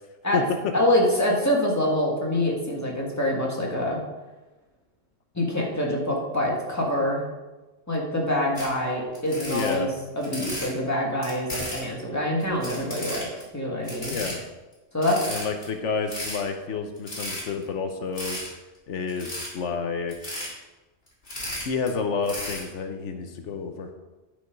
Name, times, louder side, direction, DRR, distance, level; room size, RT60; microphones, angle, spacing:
voice 1, 0.7-4.0 5.3-7.2 7.9-14.1 14.9-15.2, left 1 dB, 15° left, -2 dB, 2.0 m, -25 dB
sound 1, 8.6-8.7 9.1-10.7 11.2-11.9 12.4-13.4 13.8-14.3 14.7-14.8 15.0-15.6 16.0-16.4 17.0-17.6 18.2-18.5 19.1-19.5 20.1-20.5 21.1-21.9 22.2-22.6, left 1 dB, 55° left, 3.0 m, -34 dB
voice 2, 9.5-9.9 14.1-14.4 15.3-18.4 18.9-20.2 21.6-23.9, left 5 dB, 90° left, 6 dB, 1.2 m, -29 dB
11.5 x 5.3 x 5.2 m, 1.1 s
omnidirectional pair, 1.2 m